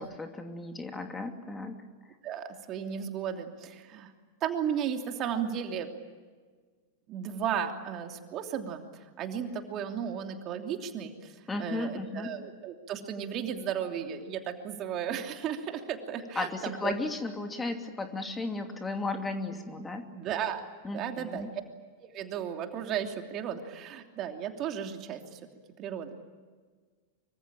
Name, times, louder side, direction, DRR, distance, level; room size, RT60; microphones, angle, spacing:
voice 1, 0.0-1.8 11.5-12.3 16.3-20.1 20.8-21.5, left 2 dB, 15° left, 5 dB, 2.8 m, -35 dB
voice 2, 2.2-4.1 4.4-5.9 7.1-11.3 11.6-16.9 20.1-20.6 20.9-21.5 22.0-25.4 25.8-26.2, right 8 dB, 40° right, 5 dB, 2.9 m, -34 dB
25.0 x 24.5 x 8.9 m, 1.5 s
figure-of-eight pair, 95°, 0 cm